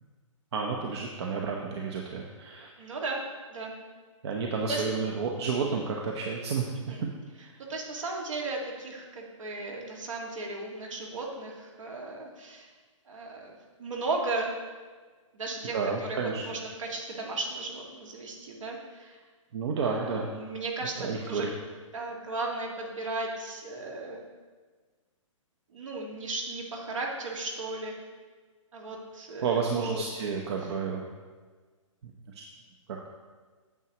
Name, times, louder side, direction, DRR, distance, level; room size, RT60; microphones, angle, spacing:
voice 1, 0.5-2.7 4.2-6.7 7.4-7.6 15.7-16.4 19.5-20.3 21.0-21.5 29.4-31.1 32.3-32.4, right 5 dB, 55° right, 0 dB, 0.9 m, -31 dB
voice 2, 2.8-3.2 3.5-3.7 4.7-4.8 6.8-7.1 7.7-12.7 13.1-14.5 15.3-19.2 19.8-21.5 21.9-24.2 25.7-27.9 28.7-30.1 30.6-30.7, right 3 dB, 70° right, 0 dB, 1.9 m, -35 dB
9.1 x 7.4 x 3.0 m, 1.4 s
hypercardioid pair, 135°, 17 cm